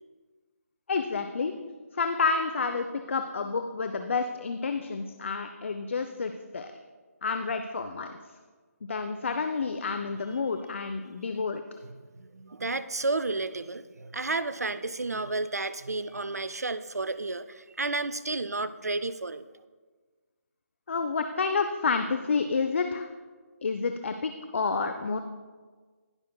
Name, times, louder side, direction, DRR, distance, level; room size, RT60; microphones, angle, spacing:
voice 1, 0.9-1.5 1.9-6.7 7.2-8.2 8.8-11.6 20.9-23.1 23.6-25.2, left 4 dB, 50° left, 7 dB, 0.5 m, -29 dB
voice 2, 12.1-19.4, right 3 dB, 80° right, 13 dB, 0.4 m, -32 dB
18.0 x 6.3 x 2.3 m, 1.4 s
figure-of-eight pair, 150°, 8 cm